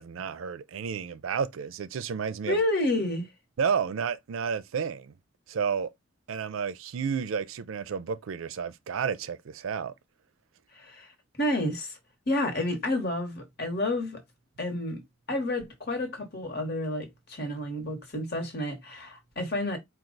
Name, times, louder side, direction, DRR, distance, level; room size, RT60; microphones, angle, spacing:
voice 1, 0.0-2.6 3.6-5.1 5.5-5.9 6.3-9.9, right 6 dB, 70° right, 0.4 m, -31 dB
voice 2, 2.5-3.3 10.7-11.1 11.4-12.0 12.3-14.2 14.6-15.0 15.3-19.8, left 1 dB, 50° left, 1.3 m, -30 dB
4.5 x 2.3 x 3.8 m
head